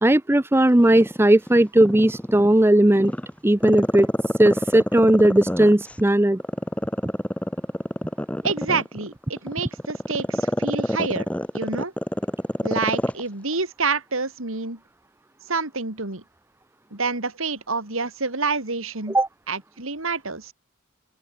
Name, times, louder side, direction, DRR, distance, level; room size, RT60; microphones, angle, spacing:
voice 1, 0.0-3.1 3.4-4.1 4.4-6.4 19.1-19.3, right 1 dB, 10° right, 0.5 m, -17 dB
Growling, 0.8-2.5 3.0-6.0 6.4-13.2 13.5-13.6, equal, 5° left, 0.9 m, -26 dB
voice 2, 8.4-11.3 11.5-11.9 12.6-14.8 15.5-16.2 16.9-19.2 19.5-20.5, right 4 dB, 80° right, 3.4 m, -27 dB
open air
head